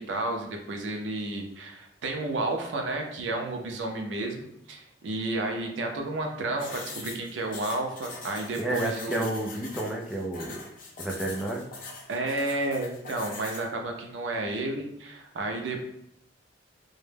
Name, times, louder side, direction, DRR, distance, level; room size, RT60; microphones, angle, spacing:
voice 1, 0.0-9.3 12.1-15.8, right 2 dB, 80° right, 3 dB, 0.5 m, -31 dB
sound 1, 6.6-13.7, left 3 dB, 50° left, 0.5 m, -42 dB
voice 2, 8.6-10.6 11.0-11.7, right 1 dB, 5° right, -2 dB, 0.3 m, -31 dB
2.1 x 2.0 x 3.2 m, 0.78 s
head